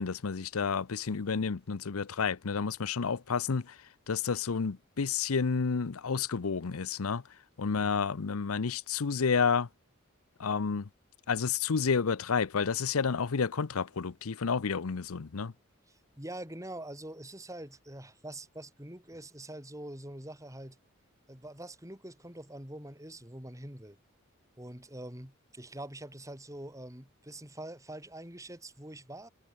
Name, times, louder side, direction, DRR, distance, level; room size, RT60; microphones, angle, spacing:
voice 1, 0.0-3.8 4.1-7.2 7.6-9.7 10.4-10.9 11.3-15.5, left 5 dB, 85° left, 0.7 m, -30 dB
voice 2, 15.9-20.8 21.3-24.0 24.6-29.3, right 1 dB, 15° right, 5.3 m, -44 dB
head